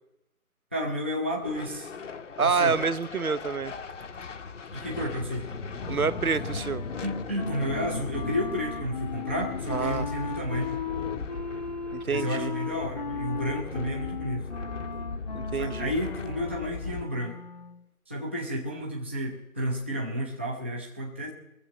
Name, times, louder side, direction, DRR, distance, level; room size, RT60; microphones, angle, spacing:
voice 1, 0.7-1.9 2.4-2.8 4.7-5.5 7.0-10.7 12.0-14.5 15.5-17.4 18.1-21.3, equal, 10° right, -4 dB, 0.7 m, -31 dB
sound 1, 1.4-17.1, left 4 dB, 55° left, 1.0 m, -38 dB
voice 2, 2.4-3.7 5.9-6.8 9.7-10.1 11.9-12.5 15.3-15.9, right 5 dB, 80° right, 15 dB, 1.1 m, -27 dB
Wind instrument woodwind instrument, 5.8-17.8, left 5 dB, 30° left, 0.8 m, -37 dB
22.0 x 7.8 x 6.0 m, 0.89 s
figure-of-eight pair, 155°, 43 cm